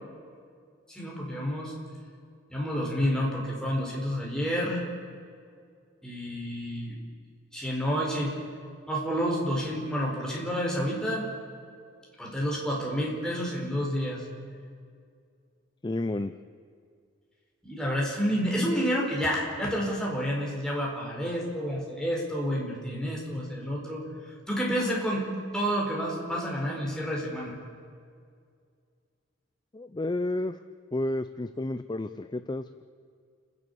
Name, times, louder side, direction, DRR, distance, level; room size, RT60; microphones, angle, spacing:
voice 1, 0.9-1.7 2.5-4.9 6.0-7.0 7.5-8.3 8.9-11.3 12.2-14.2 17.6-24.0 24.5-25.2 25.5-27.6, equal, 5° left, -3 dB, 4.8 m, -29 dB
voice 2, 15.8-16.3 29.7-30.6 30.9-32.8, left 2 dB, 25° left, 11 dB, 0.5 m, -31 dB
29.0 x 11.0 x 8.5 m, 2.2 s
head